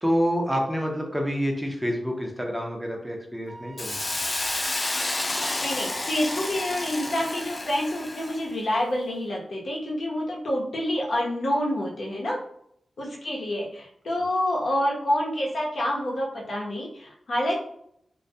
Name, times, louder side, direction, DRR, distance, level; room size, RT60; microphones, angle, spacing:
voice 1, 0.0-4.0, equal, 10° right, 1 dB, 0.6 m, -27 dB
Wind instrument woodwind instrument, 3.5-7.5, right 2 dB, 50° right, 0.6 m, -45 dB
Hiss, 3.8-8.5, left 2 dB, 35° left, 0.3 m, -30 dB
voice 2, 5.6-12.4 13.0-17.6, left 1 dB, 75° left, -3 dB, 0.7 m, -27 dB
2.2 x 2.2 x 2.6 m, 0.69 s
cardioid pair, 55°, 0 cm